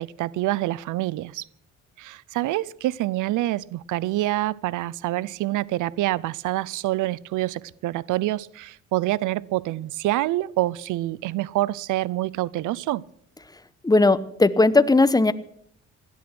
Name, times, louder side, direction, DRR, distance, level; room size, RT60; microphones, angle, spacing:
voice 1, 0.0-1.5 2.0-13.0, right 16 dB, 85° right, 0.6 m, -26 dB
voice 2, 13.8-15.3, left 2 dB, 15° left, 1.0 m, -17 dB
16.5 x 12.0 x 6.1 m
cardioid pair, 90°, 30 cm